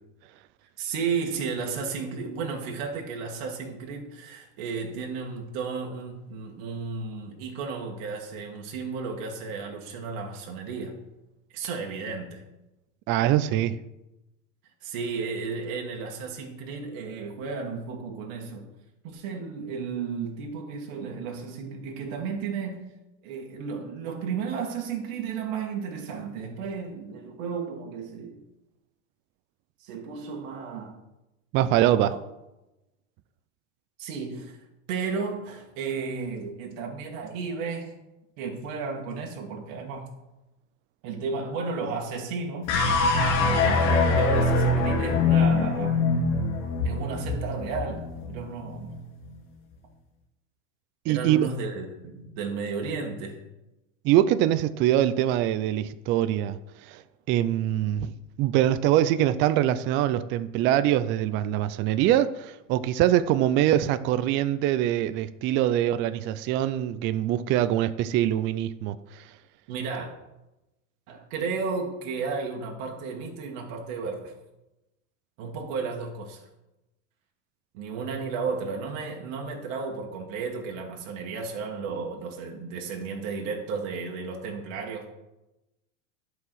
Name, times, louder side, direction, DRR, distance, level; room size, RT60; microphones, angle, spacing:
voice 1, 0.8-11.0 11.5-12.4 14.8-18.7 19.0-22.8 23.2-28.4 29.8-31.0 31.8-32.2 34.0-34.6 34.9-37.9 38.4-40.1 41.0-42.7 43.3-46.0 46.8-49.0 51.1-53.4 69.7-70.1 71.1-74.3 75.4-76.4 77.7-85.1, right 5 dB, 55° right, 2.0 m, -33 dB
voice 2, 13.1-13.8 31.5-32.2 51.1-51.5 54.0-57.0 57.3-58.1 58.4-69.2, right 12 dB, 30° right, 0.4 m, -23 dB
sound 1, 42.7-49.1, left 3 dB, 60° left, 2.0 m, -23 dB
11.0 x 4.8 x 6.3 m
supercardioid pair, 125°, 38 cm